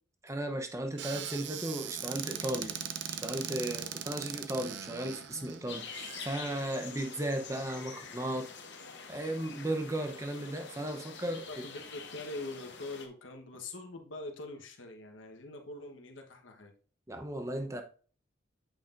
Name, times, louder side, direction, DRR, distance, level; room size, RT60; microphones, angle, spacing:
voice 1, 0.2-2.8 3.2-8.5 9.1-11.4 17.1-17.8, right 1 dB, 15° right, 0.8 m, -35 dB
Squeak / Cupboard open or close, 1.0-6.3, right 8 dB, 65° right, 0.6 m, -40 dB
sound 1, 5.7-13.1, left 5 dB, 65° left, 1.0 m, -46 dB
voice 2, 11.2-16.7, left 2 dB, 90° left, 1.2 m, -44 dB
8.7 x 5.5 x 2.6 m
head